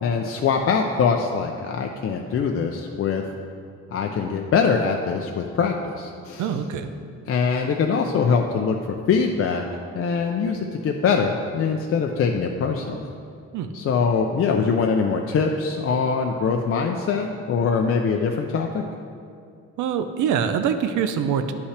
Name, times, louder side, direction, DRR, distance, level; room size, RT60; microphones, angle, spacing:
voice 1, 0.0-3.2 3.9-6.4 7.3-9.6 9.9-13.0 13.7-18.8, left 5 dB, 50° left, 2 dB, 0.5 m, -23 dB
voice 2, 6.4-6.9 13.5-13.7 19.8-21.5, right 7 dB, 80° right, 9 dB, 0.6 m, -24 dB
10.0 x 5.5 x 3.3 m, 2.3 s
cardioid pair, 90°, 30 cm